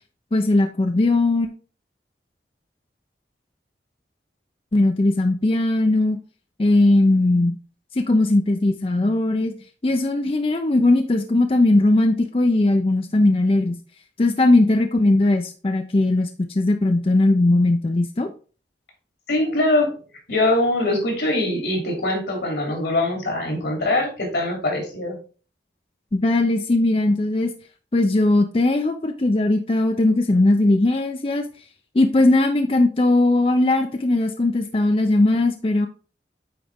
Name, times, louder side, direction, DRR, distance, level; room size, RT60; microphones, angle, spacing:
voice 1, 0.3-1.5 4.7-6.2 6.6-7.6 7.9-9.5 9.8-13.8 14.2-18.3 26.1-27.5 27.9-31.4 31.9-35.9, left 2 dB, 30° left, 6 dB, 0.4 m, -19 dB
voice 2, 19.3-19.9 20.3-25.2, left 1 dB, 85° left, 1 dB, 2.9 m, -22 dB
8.7 x 4.1 x 3.5 m, 0.38 s
head